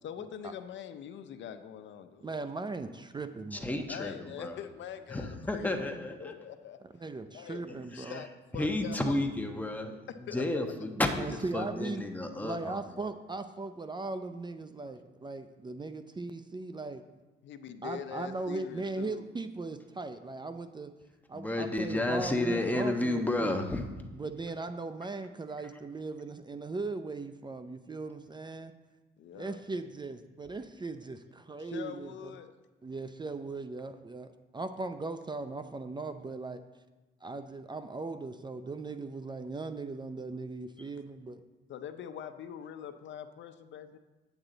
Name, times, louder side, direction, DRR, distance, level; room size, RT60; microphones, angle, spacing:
voice 1, 0.0-2.4 3.9-5.8 6.2-7.0 7.3-9.2 10.1-10.7 17.4-19.3 29.2-29.6 31.6-32.5 41.7-44.0, left 9 dB, 70° left, 10 dB, 0.6 m, -43 dB
voice 2, 2.2-3.9 5.8-5.9 7.0-8.2 10.9-12.0 12.4-17.0 17.8-20.9 21.3-23.5 24.1-28.7 29.3-32.3 32.8-36.6 37.2-41.4, right 3 dB, 20° right, 9 dB, 0.5 m, -38 dB
voice 3, 3.5-4.6 5.1-6.4 7.6-8.2 8.6-12.8 21.3-23.8, left 2 dB, 10° left, 3 dB, 1.1 m, -32 dB
8.8 x 8.1 x 3.9 m, 1.2 s
cardioid pair, 90°, 20 cm